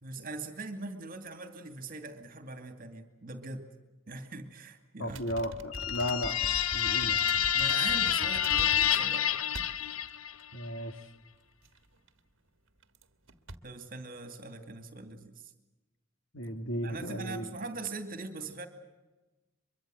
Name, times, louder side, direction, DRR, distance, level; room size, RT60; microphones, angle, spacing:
voice 1, 0.0-3.7 4.1-5.2 7.5-9.4 13.6-15.5 16.8-18.7, right 3 dB, 45° right, 8 dB, 2.5 m, -41 dB
voice 2, 5.0-7.2 10.5-11.1 16.3-17.5, equal, 65° left, 8 dB, 1.9 m, -35 dB
sound 1, 5.1-9.1 9.5-10.1 10.4-10.5 11.6-12.1 12.8-13.0 13.3-13.6, right 2 dB, 65° right, 1.5 m, -43 dB
sound 2, 5.7-10.4, left 9 dB, 85° left, 0.8 m, -28 dB
23.5 x 23.5 x 7.7 m, 1.1 s
head